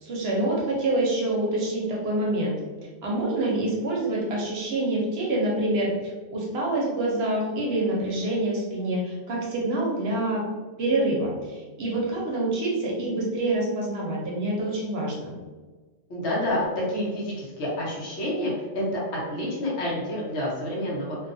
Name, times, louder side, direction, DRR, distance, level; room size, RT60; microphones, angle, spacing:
voice 1, 0.0-2.5 3.0-10.5 10.8-15.3, right 1 dB, 60° right, -4 dB, 0.8 m, -26 dB
voice 2, 16.1-21.2, left 1 dB, 65° left, -6 dB, 1.1 m, -28 dB
2.6 x 2.3 x 2.5 m, 1.3 s
omnidirectional pair, 1.3 m